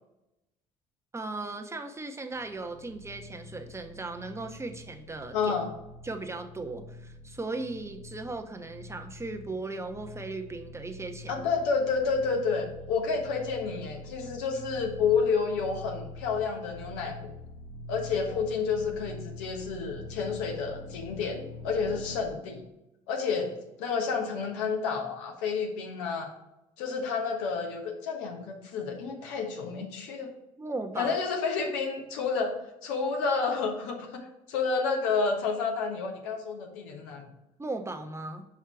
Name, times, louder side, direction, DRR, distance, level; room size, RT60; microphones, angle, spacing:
voice 1, 1.1-5.5 6.0-11.4 30.6-31.1 37.6-38.4, right 3 dB, 15° right, 5 dB, 0.9 m, -37 dB
sound 1, 2.3-22.2, left 2 dB, 70° left, 1.1 m, -45 dB
voice 2, 5.3-5.7 11.3-17.3 17.9-21.4 21.6-22.6 23.1-23.5 23.8-26.3 26.8-30.3 31.0-32.6 32.8-37.3, left 5 dB, 85° left, 2 dB, 1.3 m, -30 dB
5.6 x 4.8 x 4.7 m, 0.92 s
supercardioid pair, 70°, 16 cm